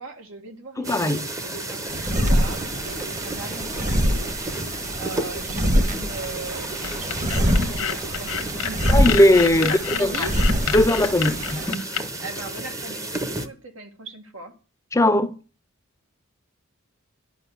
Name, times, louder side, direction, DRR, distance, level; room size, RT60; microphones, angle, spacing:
voice 1, 0.0-1.1 1.4-4.7 5.0-8.8 9.5-10.4 11.6-11.7 12.2-14.6, right 3 dB, 75° right, 2.0 m, -39 dB
voice 2, 0.8-1.2 8.9-10.3 10.7-11.8 14.9-15.4, left 1 dB, 15° left, 0.7 m, -19 dB
sound 1, 0.8-13.5, right 2 dB, 15° right, 0.9 m, -33 dB
sound 2, 1.9-11.7, equal, 35° right, 1.6 m, -25 dB
sound 3, 6.8-12.0, left 8 dB, 75° left, 1.1 m, -29 dB
11.0 x 5.5 x 8.1 m
head